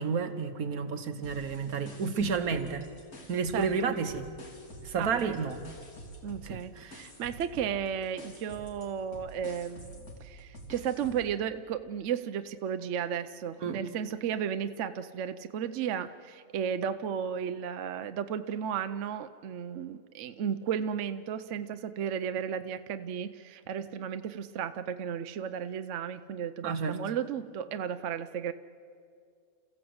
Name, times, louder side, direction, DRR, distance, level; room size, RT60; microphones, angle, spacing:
voice 1, 0.0-2.9 3.3-4.3 4.8-5.6 6.4-6.9 13.6-13.8 26.6-27.0, right 5 dB, 80° right, 8 dB, 1.7 m, -31 dB
sound 1, 1.2-3.8 4.1-11.3, equal, 90° left, 3.2 m, -48 dB
voice 2, 3.5-3.9 5.0-5.4 6.2-28.5, right 8 dB, 65° right, 10 dB, 0.9 m, -34 dB
29.5 x 15.0 x 7.9 m, 2.3 s
omnidirectional pair, 1.5 m